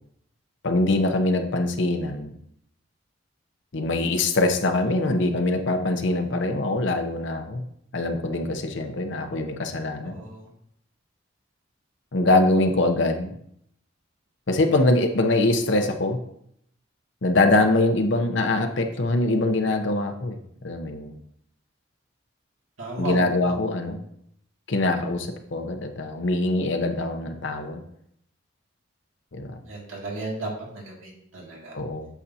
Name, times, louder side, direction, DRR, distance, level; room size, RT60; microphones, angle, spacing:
voice 1, 0.6-2.4 3.7-7.6 7.9-10.2 12.1-13.3 14.5-16.2 17.2-20.4 20.6-21.1 23.0-24.0 24.7-27.8 29.3-29.6 31.7-32.1, left 2 dB, 65° left, 5 dB, 0.7 m, -23 dB
voice 2, 10.0-10.5 22.8-23.5 29.6-31.7, right 2 dB, 90° right, -3 dB, 2.3 m, -35 dB
8.3 x 6.6 x 2.8 m, 0.72 s
head